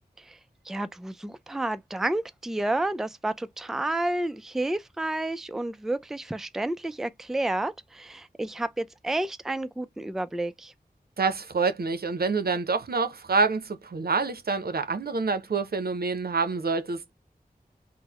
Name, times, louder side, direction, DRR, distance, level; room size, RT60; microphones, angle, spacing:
voice 1, 0.7-10.7, right 1 dB, 5° right, 0.3 m, -30 dB
voice 2, 11.2-17.1, right 4 dB, 75° right, 0.7 m, -27 dB
3.7 x 2.1 x 2.9 m
wide cardioid pair, 65°, 16 cm